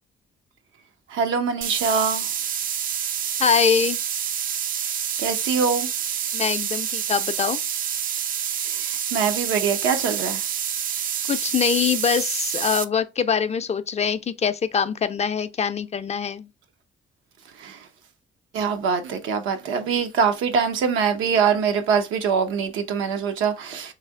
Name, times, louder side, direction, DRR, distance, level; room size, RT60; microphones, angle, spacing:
voice 1, 1.1-2.3 5.2-5.9 8.7-10.4 17.6-17.8 18.5-23.9, right 6 dB, 85° right, 0.7 m, -23 dB
sound 1, 1.6-12.8, right 9 dB, 45° right, 0.4 m, -27 dB
voice 2, 3.4-4.0 6.3-7.6 11.3-16.5, left 7 dB, 35° left, 0.4 m, -23 dB
3.3 x 2.7 x 3.5 m
cardioid pair, 90°, 20 cm